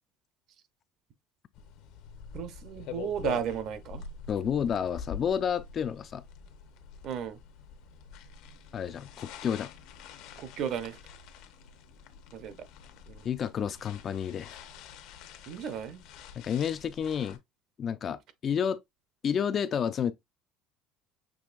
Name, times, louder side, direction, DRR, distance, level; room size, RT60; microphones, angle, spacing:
sound 1, 1.5-17.4, left 7 dB, 65° left, 0.8 m, -46 dB
voice 1, 2.3-4.0 7.0-7.4 10.4-11.0 12.3-12.6 13.1-13.2 15.5-16.0, right 8 dB, 45° right, 0.7 m, -34 dB
voice 2, 4.3-6.2 8.7-9.7 13.2-14.5 16.4-17.4 17.8-18.8 19.2-20.1, left 8 dB, 30° left, 0.3 m, -30 dB
6.2 x 3.1 x 2.5 m
cardioid pair, 160°, 0 cm